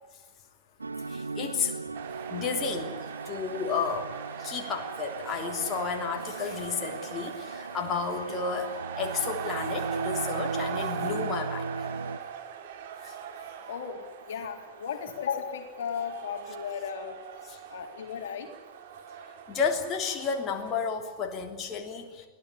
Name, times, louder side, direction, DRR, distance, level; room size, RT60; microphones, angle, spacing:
sound 1, 0.8-12.2, right 3 dB, 80° right, 0.8 m, -38 dB
voice 1, 1.1-1.8 2.3-4.1 4.4-11.7 13.0-13.1 19.5-22.3, left 5 dB, 30° left, 2 dB, 3.3 m, -32 dB
sound 2, 1.9-20.8, right 8 dB, 55° right, 3.1 m, -40 dB
voice 2, 13.7-14.0 14.3-17.2 17.7-18.5, left 7 dB, 60° left, 4 dB, 3.4 m, -35 dB
23.5 x 16.5 x 10.0 m, 1.4 s
figure-of-eight pair, 90°, 0 cm